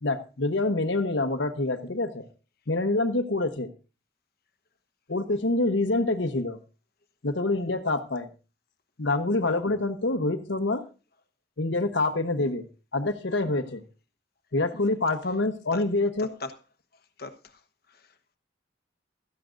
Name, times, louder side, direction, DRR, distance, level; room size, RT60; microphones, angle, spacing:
voice 1, 0.0-2.3 2.7-3.7 5.1-6.6 7.2-8.3 9.0-10.8 11.6-12.6 12.9-13.8 14.5-16.3, left 2 dB, 75° left, 1.1 m, -26 dB
voice 2, 16.2-16.6 16.9-17.6 17.9-18.4, left 3 dB, 50° left, 1.1 m, -41 dB
16.5 x 13.5 x 2.6 m
head